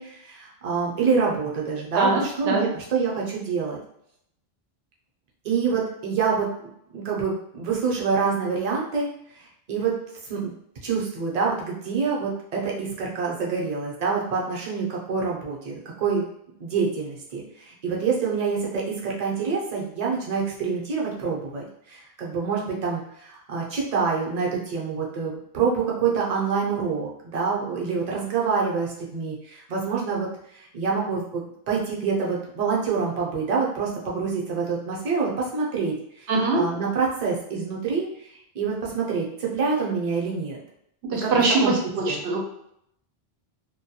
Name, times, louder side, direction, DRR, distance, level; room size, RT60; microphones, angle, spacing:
voice 1, 0.0-3.8 5.4-6.5 6.9-9.1 9.4-9.9 10.2-10.5 10.8-16.2 16.6-30.3 30.5-38.3 38.5-40.6 41.2-41.7 42.1-42.2, right 5 dB, 45° right, -3 dB, 0.7 m, -26 dB
voice 2, 1.9-2.7 36.3-36.6 41.1-42.4, right 3 dB, 85° right, 1 dB, 0.8 m, -23 dB
2.2 x 2.2 x 2.7 m, 0.73 s
omnidirectional pair, 1.0 m